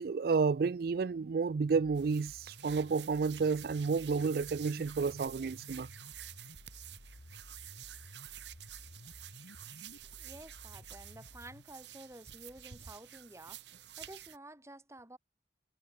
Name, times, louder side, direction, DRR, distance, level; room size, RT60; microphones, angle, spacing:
voice 1, 0.0-5.9, right 5 dB, 55° right, 0.4 m, -31 dB
sound 1, 1.7-11.6, left 1 dB, 75° left, 2.2 m, -54 dB
sound 2, 1.9-14.4, right 12 dB, 80° right, 1.6 m, -50 dB
voice 2, 10.1-15.2, right 1 dB, 15° right, 5.4 m, -52 dB
head